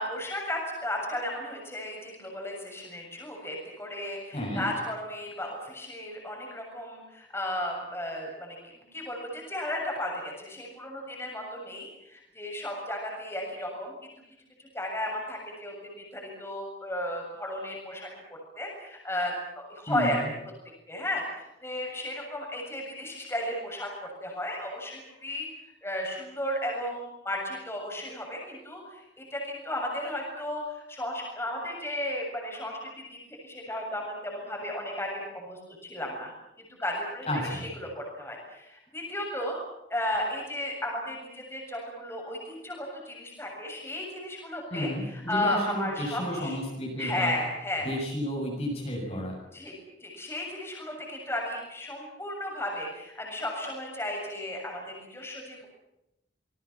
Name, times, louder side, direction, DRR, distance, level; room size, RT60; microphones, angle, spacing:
voice 1, 0.0-8.6 8.9-14.1 14.6-18.1 18.6-20.2 20.9-23.9 24.2-25.5 25.8-36.3 36.6-39.6 39.9-46.6 47.0-47.9 49.5-49.7 50.0-55.7, left 1 dB, 15° left, -1 dB, 7.3 m, -34 dB
voice 2, 4.3-4.6 19.9-20.2 37.3-37.7 44.7-47.3 47.8-49.4, equal, 35° left, -1 dB, 6.9 m, -32 dB
26.5 x 21.5 x 7.3 m, 0.87 s
head